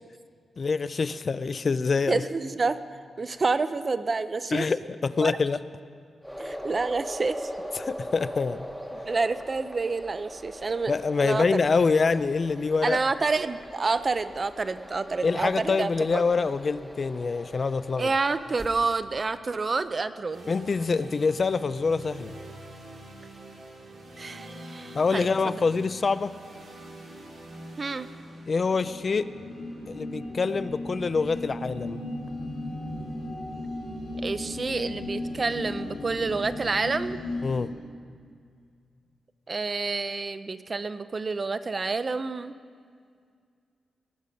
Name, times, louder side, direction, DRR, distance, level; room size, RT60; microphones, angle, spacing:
voice 1, 0.6-2.2 4.5-5.6 7.7-8.7 10.9-13.0 15.2-18.1 20.5-22.4 24.9-26.3 28.5-29.3 29.9-32.0 37.4-37.7, left 4 dB, 35° left, 14 dB, 0.3 m, -25 dB
voice 2, 2.1-2.8 3.2-4.7 5.2-5.3 6.4-7.5 9.1-10.9 11.2-11.4 12.8-16.2 18.0-20.5 24.2-25.3 27.8-28.1 34.2-37.2 39.5-42.5, right 4 dB, 30° right, 12 dB, 0.5 m, -28 dB
sound 1, 6.2-18.7, equal, 5° right, 1.1 m, -41 dB
sound 2, 20.3-34.2, right 1 dB, 75° right, 3.9 m, -46 dB
sound 3, 28.6-37.7, left 1 dB, 80° left, 3.3 m, -36 dB
19.0 x 9.7 x 5.2 m, 2.1 s
wide cardioid pair, 150°, 0 cm